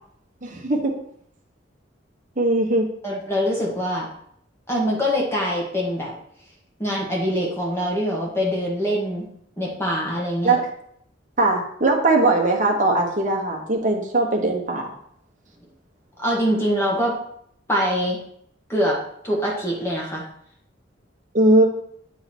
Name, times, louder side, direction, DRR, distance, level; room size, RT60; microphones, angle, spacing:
voice 1, 0.4-1.0 2.4-2.9 10.4-10.6 11.4-14.9 21.3-21.6, right 2 dB, 45° right, 0 dB, 1.3 m, -20 dB
voice 2, 3.0-4.1 4.7-6.1 6.8-9.3 9.6-10.5 16.2-17.2 17.7-18.2 18.7-19.0 19.2-20.2, equal, 15° left, -3 dB, 1.5 m, -24 dB
8.2 x 3.8 x 4.4 m, 0.68 s
head